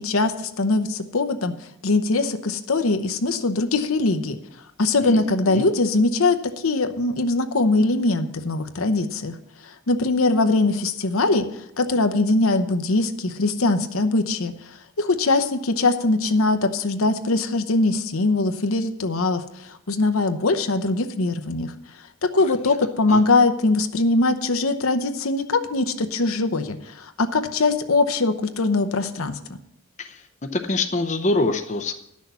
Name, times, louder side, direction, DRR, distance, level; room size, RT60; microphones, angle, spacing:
voice 1, 0.0-1.5 1.8-4.4 4.8-9.4 9.6-21.7 22.2-29.4, left 3 dB, 80° left, 8 dB, 0.9 m, -22 dB
voice 2, 5.0-5.6 22.4-22.8 23.1-23.2 30.0-31.9, left 2 dB, 35° left, 6 dB, 0.6 m, -26 dB
11.5 x 6.4 x 6.9 m, 0.77 s
head